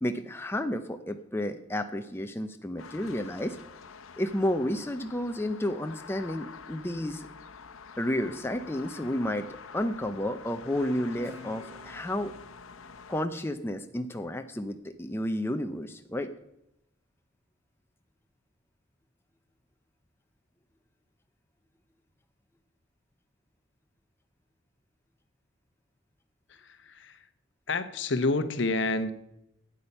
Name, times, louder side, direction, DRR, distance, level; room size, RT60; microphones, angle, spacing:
voice 1, 0.0-3.6 4.2-7.3 8.0-9.5 9.7-12.3 13.1-16.3, left 1 dB, 10° left, 7 dB, 0.5 m, -31 dB
sound 1, 2.8-13.2, left 5 dB, 85° left, 0.8 m, -47 dB
Guitar, 11.2-14.4, left 1 dB, 10° right, 2.6 m, -51 dB
voice 2, 26.5-27.3 27.7-29.1, left 2 dB, 60° left, 11 dB, 0.9 m, -29 dB
12.0 x 8.7 x 5.5 m, 0.87 s
head